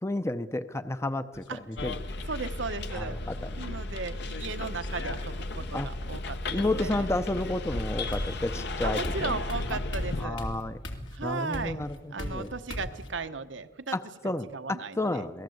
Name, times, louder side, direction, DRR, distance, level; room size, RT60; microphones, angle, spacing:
voice 1, 0.0-2.0 2.9-3.5 5.7-5.9 6.5-9.3 10.2-10.8 11.2-12.5 13.9-15.4, left 2 dB, 15° left, 11 dB, 0.6 m, -31 dB
sound 1, 1.3-1.9 3.2-3.8 4.8-5.8 7.5-7.6 8.1-13.1, equal, 85° left, 3.0 m, -39 dB
Bus, 1.8-10.3, left 2 dB, 65° left, 1.1 m, -34 dB
voice 2, 2.3-3.2 3.6-7.1 8.8-10.4 11.1-14.0 14.5-15.2, right 4 dB, 80° right, 10 dB, 1.1 m, -36 dB
27.5 x 19.0 x 8.0 m, 1.4 s
head